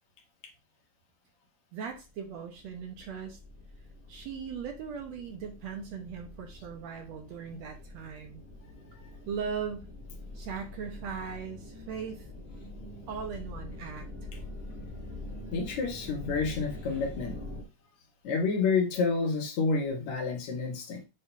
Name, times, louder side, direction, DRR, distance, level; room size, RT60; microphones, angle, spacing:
voice 1, 1.7-3.4 4.1-8.4 9.3-9.9 10.4-12.3 13.1-14.1, right 6 dB, 65° right, 4 dB, 2.0 m, -39 dB
sound 1, 1.9-17.6, left 2 dB, 25° left, 2.4 m, -45 dB
voice 2, 15.5-17.3 18.2-21.0, left 4 dB, 65° left, 3 dB, 2.4 m, -29 dB
7.9 x 3.7 x 5.6 m, 0.28 s
omnidirectional pair, 3.7 m